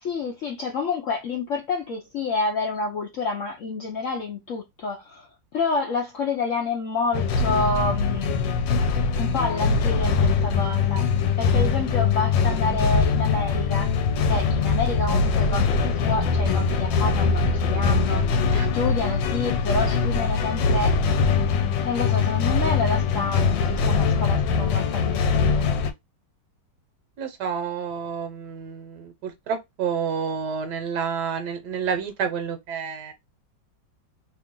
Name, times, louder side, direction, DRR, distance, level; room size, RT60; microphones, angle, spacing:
voice 1, 0.0-8.6 9.2-14.0 14.2-18.2 18.6-21.0 21.8-25.7, left 4 dB, 70° left, 0.7 m, -28 dB
sound 1, 7.1-25.9, left 5 dB, 85° left, 1.3 m, -22 dB
voice 2, 27.2-33.1, right 6 dB, 70° right, 1.3 m, -29 dB
3.1 x 2.4 x 3.6 m
omnidirectional pair, 2.0 m